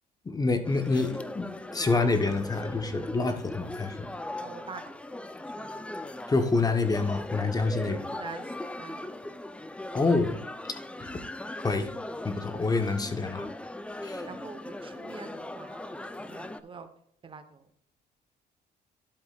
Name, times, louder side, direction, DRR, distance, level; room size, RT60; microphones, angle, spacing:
voice 1, 0.3-1.5 1.7-3.9 6.3-8.0 9.9-10.4 11.6-11.9 12.2-13.5 14.0-14.2, left 3 dB, 20° left, 7 dB, 1.1 m, -27 dB
sound 1, 0.6-16.6, left 1 dB, 5° left, 0.6 m, -39 dB
voice 2, 4.4-4.8 5.6-5.9 7.8-8.4 8.8-9.3 14.2-15.9 16.2-16.9 17.2-17.6, right 5 dB, 30° right, 8 dB, 1.1 m, -45 dB
11.0 x 8.1 x 2.4 m, 0.66 s
cardioid pair, 110°, 17 cm